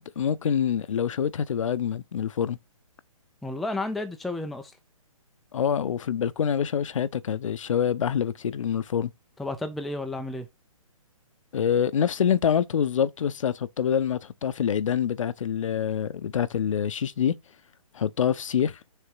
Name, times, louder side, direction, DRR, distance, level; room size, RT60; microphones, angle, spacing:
voice 1, 0.0-2.6 5.5-9.1 11.5-17.3 17.9-18.8, left 8 dB, 60° left, 0.7 m, -26 dB
voice 2, 3.4-4.8 9.4-10.5, left 2 dB, ahead, 0.3 m, -32 dB
6.7 x 3.5 x 4.7 m
figure-of-eight pair, 140°, 18 cm